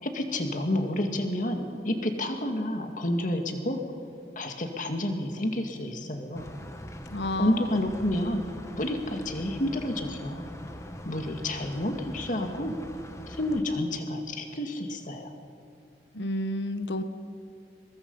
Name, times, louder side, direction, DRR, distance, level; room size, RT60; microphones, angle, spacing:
voice 1, 0.0-3.8 4.4-6.5 7.4-8.5 8.8-10.5 11.1-12.7 13.3-15.3, left 1 dB, 50° left, 5 dB, 2.1 m, -29 dB
sound 1, 6.3-13.6, equal, 15° left, 1.4 m, -42 dB
voice 2, 7.1-7.9 16.1-17.0, left 1 dB, 85° left, 10 dB, 1.2 m, -31 dB
22.0 x 22.0 x 5.6 m, 2.4 s
head